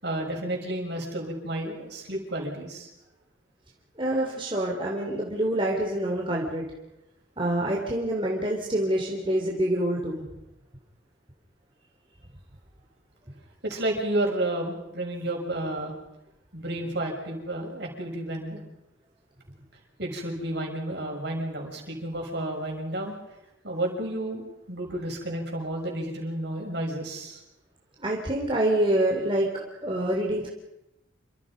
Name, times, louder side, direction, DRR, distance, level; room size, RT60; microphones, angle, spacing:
voice 1, 0.0-2.9 13.6-15.9 16.5-18.6 20.0-23.2 23.6-27.4, right 1 dB, 55° right, 1 dB, 6.7 m, -31 dB
voice 2, 4.0-6.7 7.4-10.3 28.0-30.5, right 1 dB, 25° right, -2 dB, 3.6 m, -26 dB
28.5 x 26.0 x 5.3 m, 0.90 s
head